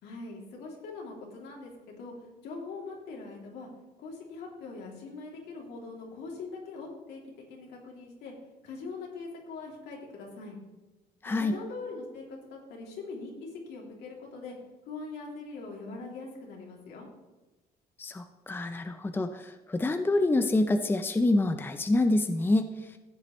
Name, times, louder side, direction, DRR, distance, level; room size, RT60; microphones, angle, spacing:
voice 1, 0.0-3.7 4.0-8.3 8.6-10.6 11.2-14.6 14.9-17.1, left 3 dB, 80° left, -1 dB, 3.0 m, -42 dB
voice 2, 18.0-22.7, left 2 dB, 10° left, 8 dB, 0.6 m, -26 dB
14.5 x 8.0 x 3.2 m, 1.1 s
cardioid pair, 110°, 17 cm